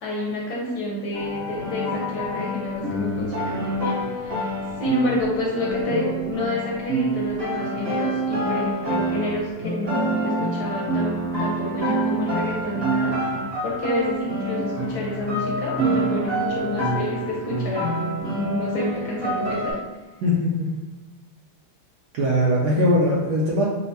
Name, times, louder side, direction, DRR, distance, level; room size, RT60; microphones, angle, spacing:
voice 1, 0.0-4.5 4.8-19.8, left 1 dB, 65° left, -3 dB, 1.0 m, -29 dB
sound 1, 1.1-19.7, right 1 dB, 45° right, 0.8 m, -27 dB
voice 2, 20.2-20.7 22.1-23.6, left 1 dB, 70° right, -6 dB, 0.9 m, -20 dB
5.4 x 2.2 x 2.7 m, 1.2 s
omnidirectional pair, 2.3 m